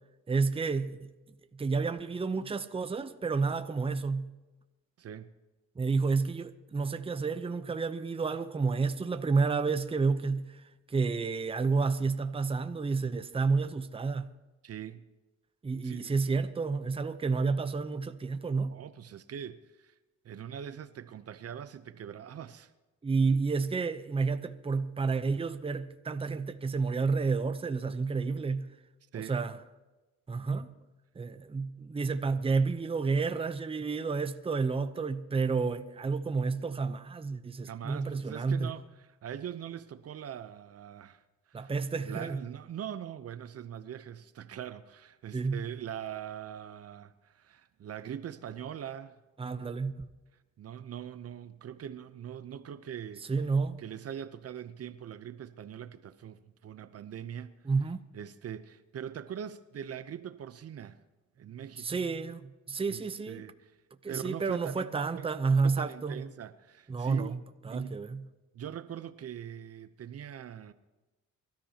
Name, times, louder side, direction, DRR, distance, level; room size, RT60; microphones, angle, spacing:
voice 1, 0.3-1.1 1.6-4.3 5.8-10.6 10.9-14.3 15.6-18.8 23.0-28.7 29.1-29.5 30.3-30.7 31.2-38.7 41.5-42.4 45.3-45.6 49.4-50.1 53.3-53.8 57.7-58.0 61.8-63.4 64.0-66.2 66.9-67.4 67.6-68.2, right 4 dB, 20° right, 0.7 m, -30 dB
voice 2, 5.0-5.3 14.6-15.0 15.8-16.2 18.7-19.9 20.2-22.7 29.1-29.4 37.6-41.2 41.5-41.7 42.0-49.2 50.6-53.3 53.8-57.5 58.1-61.0 61.4-62.0 62.9-63.7 64.1-67.4 67.7-67.9 68.5-70.7, right 9 dB, 55° right, 0.7 m, -42 dB
24.0 x 13.5 x 2.9 m
cardioid pair, 90°, 30 cm